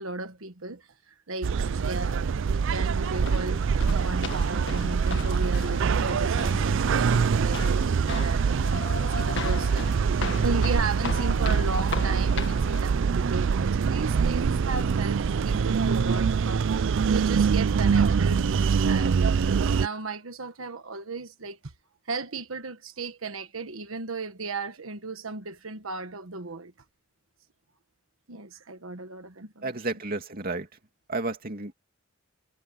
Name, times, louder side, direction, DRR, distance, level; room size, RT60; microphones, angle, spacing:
voice 1, 0.0-19.1 19.7-21.7 22.0-26.7 28.3-29.7, right 3 dB, 90° right, 1.4 m, -36 dB
sound 1, 1.4-19.9, right 6 dB, 65° right, 0.4 m, -24 dB
sound 2, 3.0-12.8, left 4 dB, 60° left, 1.8 m, -37 dB
voice 2, 29.6-30.7 31.1-31.7, right 2 dB, 45° right, 2.6 m, -31 dB
head